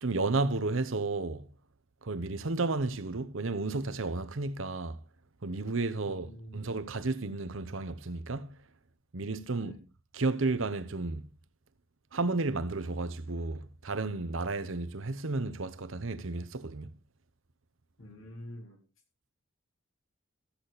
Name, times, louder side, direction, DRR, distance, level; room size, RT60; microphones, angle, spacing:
voice 1, 0.0-1.5 2.0-5.0 5.4-8.6 9.1-9.9 10.1-11.3 12.1-16.9, right 3 dB, 65° right, 0.9 m, -32 dB
voice 2, 5.9-6.6 9.5-9.7 18.0-18.8, equal, 75° left, 4.0 m, -47 dB
14.5 x 8.4 x 4.1 m
head